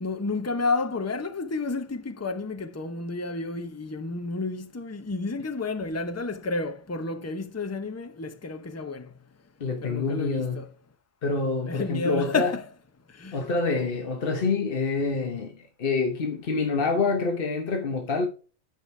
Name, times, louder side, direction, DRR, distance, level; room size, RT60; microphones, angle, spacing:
voice 1, 0.0-9.1 9.8-10.7 11.6-12.7 13.2-13.4, left 3 dB, 15° left, 0.6 m, -31 dB
voice 2, 9.6-10.6 11.2-12.5 13.3-18.3, left 4 dB, 45° left, 1.1 m, -27 dB
9.4 x 5.1 x 3.3 m
omnidirectional pair, 1.4 m